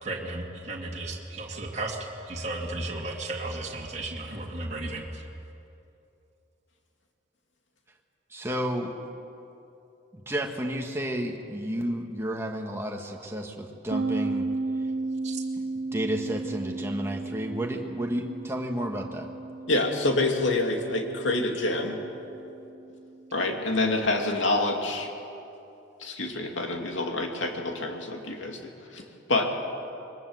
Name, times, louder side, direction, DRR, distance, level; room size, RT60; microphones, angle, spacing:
voice 1, 0.0-2.0 2.2-5.3 15.2-15.4, right 2 dB, 35° right, -2 dB, 2.3 m, -34 dB
voice 2, 8.3-9.0 10.1-14.5 15.9-19.3, equal, 15° right, 1 dB, 1.6 m, -31 dB
sound 1, 13.9-23.4, right 3 dB, 55° right, 0.7 m, -34 dB
voice 3, 19.7-22.0 23.3-25.1 26.0-29.0 29.3-29.4, left 2 dB, 75° left, 2 dB, 2.6 m, -27 dB
22.0 x 19.5 x 8.0 m, 2.8 s
head